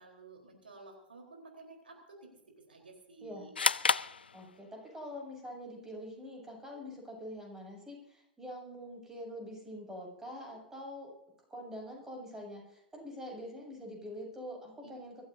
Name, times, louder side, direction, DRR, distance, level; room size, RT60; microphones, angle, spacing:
voice 1, 0.0-2.2 2.7-3.5 14.8-14.9, right 3 dB, 75° right, 1 dB, 4.1 m, -53 dB
sound 1, 3.5-5.0, left 5 dB, 80° left, 0.4 m, -31 dB
voice 2, 4.3-11.1 11.5-15.3, equal, 10° right, -1 dB, 7.0 m, -45 dB
24.0 x 15.5 x 2.7 m, 0.81 s
figure-of-eight pair, 95°, 5 cm